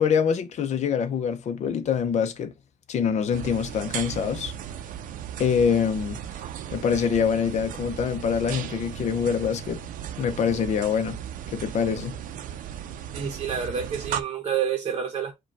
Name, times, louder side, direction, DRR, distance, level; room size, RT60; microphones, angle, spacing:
voice 1, 0.0-2.5 2.9-4.5 5.4-6.2 6.7-9.8 10.2-11.2 11.5-12.1, left 7 dB, 55° left, 0.6 m, -25 dB
sound 1, 3.3-14.2, right 10 dB, 80° right, 0.5 m, -36 dB
voice 2, 13.1-15.3, right 8 dB, 40° right, 0.7 m, -28 dB
5.0 x 2.3 x 4.5 m
cardioid pair, 135°, 14 cm